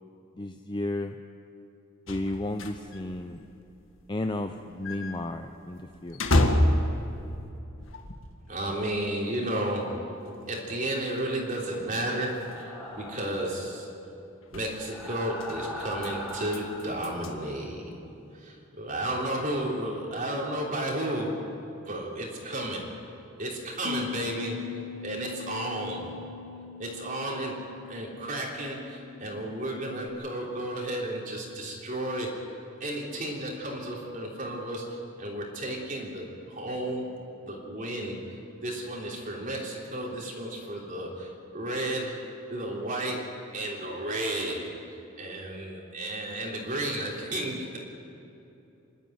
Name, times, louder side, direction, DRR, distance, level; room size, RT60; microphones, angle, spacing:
voice 1, 0.4-1.1 2.1-3.4 4.1-6.3, left 1 dB, 20° left, 6 dB, 0.6 m, -33 dB
sound 1, 2.1-8.5 8.8-8.9 9.5-9.6 10.2-10.3 10.6-10.7 10.9-11.2 11.5-12.6 13.3-13.5 14.4-14.7 15.2-17.3, left 1 dB, 75° left, 1.8 m, -30 dB
voice 2, 8.5-10.2 10.5-13.9 14.5-17.9 18.4-21.4 21.9-22.9 23.4-24.6 25.0-26.2 26.8-32.4 32.8-37.1 37.4-38.2 38.6-42.2 42.5-47.8, right 1 dB, 40° right, -2 dB, 3.4 m, -33 dB
sound 2, 12.3-13.5 14.7-16.9, left 1 dB, ahead, 4.2 m, -40 dB
Bass guitar, 23.8-30.1, left 7 dB, 85° right, 1.9 m, -41 dB
27.0 x 12.0 x 9.4 m, 2.8 s
head